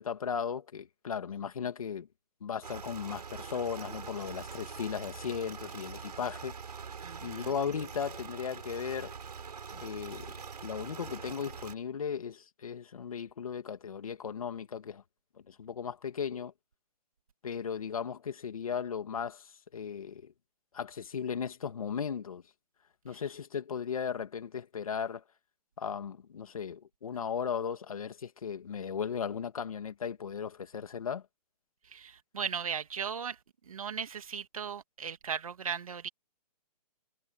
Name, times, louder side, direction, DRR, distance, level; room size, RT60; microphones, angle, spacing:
voice 1, 0.0-2.1 2.4-6.6 7.2-9.1 9.7-10.3 10.6-15.0 15.5-16.5 17.4-20.3 20.7-22.4 23.0-25.2 25.8-31.2, left 7 dB, 55° left, 2.4 m, -36 dB
sound 1, 2.6-11.8, right 6 dB, 70° right, 6.6 m, -44 dB
voice 2, 7.0-7.5 31.9-33.4 33.7-36.1, right 7 dB, 55° right, 2.2 m, -37 dB
hypercardioid pair, 180°, 21 cm